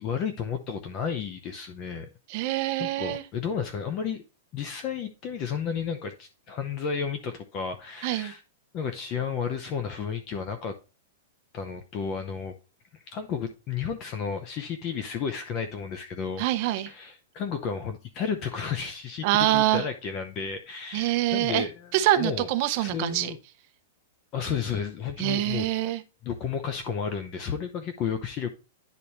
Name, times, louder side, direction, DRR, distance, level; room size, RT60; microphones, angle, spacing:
voice 1, 0.0-2.1 2.8-4.2 4.5-8.4 8.7-10.8 11.5-12.5 13.1-16.4 16.9-21.7 22.2-22.5 22.8-23.4 24.3-25.7 26.2-28.5, left 6 dB, 30° left, 0.7 m, -32 dB
voice 2, 2.3-3.2 8.0-8.3 16.4-16.9 19.2-19.8 20.9-21.7 21.9-23.3 25.2-26.0, right 14 dB, 35° right, 0.7 m, -25 dB
10.0 x 4.2 x 3.1 m
supercardioid pair, 170°, 0 cm